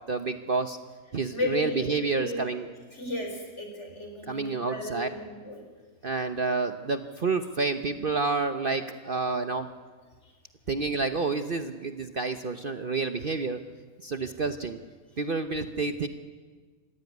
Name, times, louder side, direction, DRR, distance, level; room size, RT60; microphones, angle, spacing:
voice 1, 0.1-0.8 1.1-2.7 4.2-5.1 6.0-9.7 10.7-13.6 14.0-14.8 15.2-16.1, right 4 dB, 45° right, 8 dB, 1.0 m, -29 dB
voice 2, 1.3-2.4 2.9-5.6, left 2 dB, 50° left, 3 dB, 5.0 m, -34 dB
27.0 x 15.5 x 9.5 m, 1.4 s
omnidirectional pair, 1.5 m